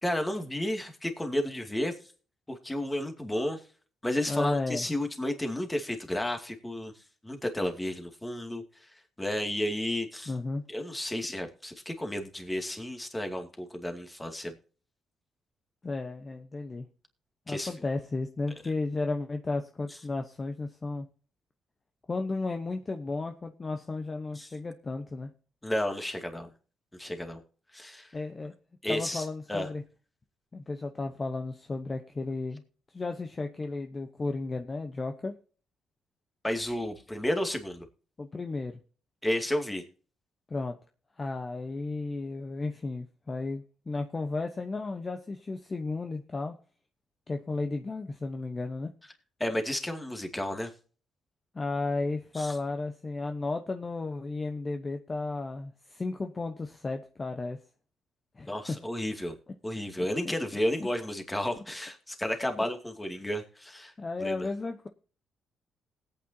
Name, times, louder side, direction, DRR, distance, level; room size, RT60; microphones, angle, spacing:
voice 1, 0.0-1.9 2.5-3.6 4.0-6.9 7.2-8.9 9.2-10.3 10.7-14.6 17.5-17.7 24.3-24.5 25.6-26.5 27.0-27.4 27.7-28.1 28.8-29.7 36.4-37.9 39.2-39.8 49.4-50.7 52.4-52.5 58.5-59.4 59.6-63.9 64.2-64.5, left 1 dB, 10° left, 5 dB, 2.4 m, -32 dB
voice 2, 4.3-4.9 10.3-10.6 15.8-16.9 17.5-21.1 22.1-25.3 28.1-28.5 28.9-29.8 30.5-32.6 32.9-35.3 38.2-38.8 40.5-40.8 41.2-46.6 47.3-48.9 51.5-57.6 58.4-58.5 60.0-60.1 64.0-64.9, left 3 dB, 30° left, 6 dB, 1.0 m, -34 dB
19.5 x 8.8 x 2.8 m, 0.41 s
cardioid pair, 90°, 0 cm